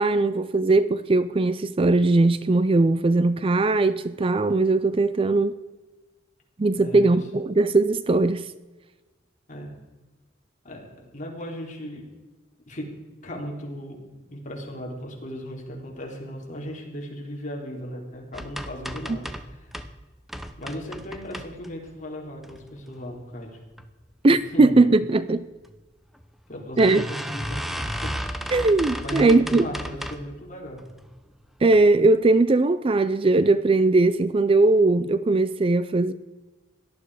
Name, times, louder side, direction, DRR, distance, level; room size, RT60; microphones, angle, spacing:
voice 1, 0.0-5.5 6.6-8.5 24.2-25.4 26.8-27.0 28.5-29.7 31.6-36.1, right 2 dB, 30° right, 0.4 m, -19 dB
voice 2, 6.8-7.2 9.5-9.7 10.6-10.9 11.1-12.0 12.7-12.8 13.2-19.8 20.6-23.6 24.2-24.7 26.5-28.1 29.0-30.8, equal, 40° left, 3.5 m, -36 dB
sound 1, 18.3-19.9 20.3-21.9 22.4-23.0 23.4-23.9 24.1-24.2 24.5-24.6 25.6-25.8 26.1-26.2 26.8-30.3 30.8-31.2 31.7-31.8 32.1-32.2, equal, ahead, 0.8 m, -34 dB
18.0 x 12.5 x 4.9 m
head